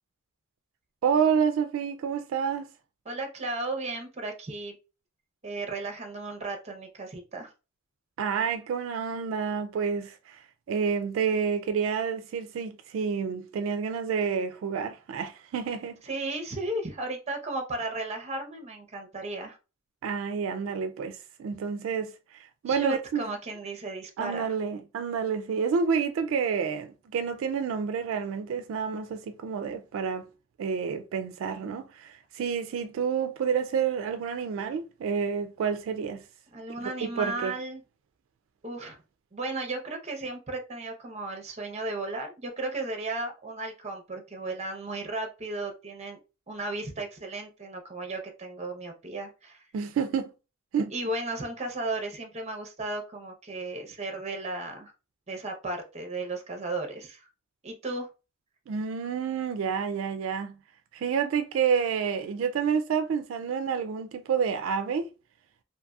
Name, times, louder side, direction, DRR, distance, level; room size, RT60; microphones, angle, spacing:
voice 1, 1.0-2.7 8.2-16.0 20.0-23.2 24.2-30.3 30.6-36.2 37.2-37.5 49.7-50.3 50.7-50.9 58.7-60.6 60.9-65.1, right 6 dB, 85° right, 0.3 m, -29 dB
voice 2, 3.1-4.8 5.4-7.5 16.0-19.6 22.7-24.5 36.5-37.8 38.6-39.0 39.3-46.2 46.5-49.7 50.9-54.9 55.3-57.3 57.6-58.1, right 2 dB, 35° right, 0.7 m, -35 dB
2.7 x 2.6 x 2.3 m
head